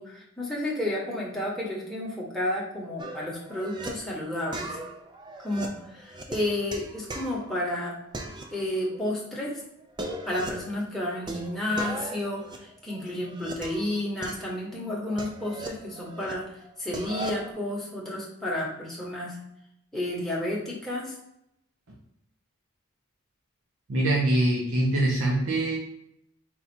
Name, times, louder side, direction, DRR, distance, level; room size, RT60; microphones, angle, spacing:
voice 1, 0.0-4.8 5.4-8.0 8.5-9.6 10.2-16.5 16.8-19.4 19.9-21.2, left 1 dB, ahead, -5 dB, 0.9 m, -31 dB
sound 1, 3.0-3.9 4.5-7.8 8.1-9.0 9.3-9.4 9.8-10.7 11.3-13.9 14.2-16.3 16.6-17.5, right 1 dB, 20° right, 0.4 m, -38 dB
voice 2, 23.9-25.8, right 1 dB, 65° right, -4 dB, 0.7 m, -23 dB
4.3 x 2.3 x 4.2 m, 0.80 s
head